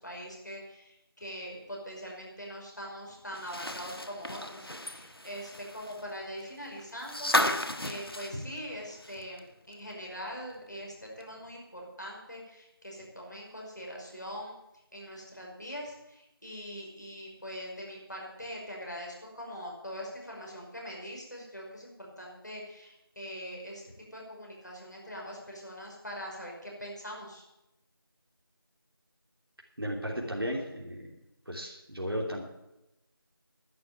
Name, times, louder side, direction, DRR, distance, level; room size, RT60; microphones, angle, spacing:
voice 1, 0.0-7.3 7.8-14.5 14.9-23.8 24.1-27.4, equal, 50° left, -2 dB, 5.4 m, -42 dB
sound 1, 3.3-9.4 9.7-9.8 11.2-11.3, left 1 dB, 70° left, 1.4 m, -33 dB
voice 2, 29.8-31.1 31.5-32.4, equal, 70° right, -1 dB, 3.1 m, -34 dB
11.5 x 10.5 x 8.9 m, 0.92 s
figure-of-eight pair, 180°, 13 cm